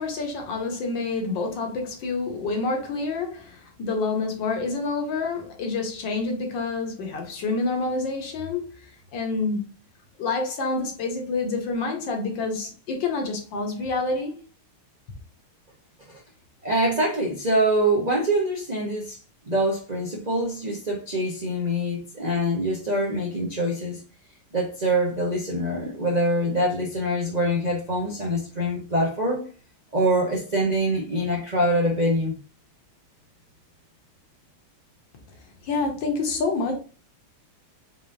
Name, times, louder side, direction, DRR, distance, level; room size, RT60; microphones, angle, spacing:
voice 1, 0.0-9.7 10.2-14.4 35.6-36.7, left 3 dB, 60° left, 1.6 m, -28 dB
voice 2, 16.6-19.2 19.4-24.0 24.5-29.4 29.9-32.4, right 1 dB, 70° right, 0.4 m, -24 dB
5.0 x 3.8 x 2.6 m
omnidirectional pair, 2.4 m